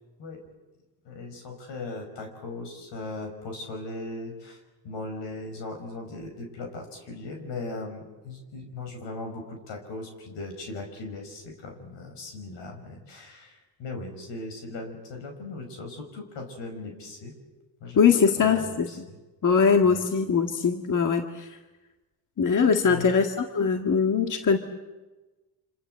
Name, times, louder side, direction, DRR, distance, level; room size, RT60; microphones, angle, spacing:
voice 1, 1.0-17.3 17.8-18.1 18.4-19.2 19.8-20.1 22.8-23.1, left 2 dB, 85° left, 4 dB, 6.1 m, -38 dB
voice 2, 18.0-18.9 19.4-21.5 22.4-24.6, left 6 dB, 45° left, 5 dB, 2.0 m, -22 dB
28.0 x 27.0 x 7.8 m, 1.2 s
cardioid pair, 85°, 42 cm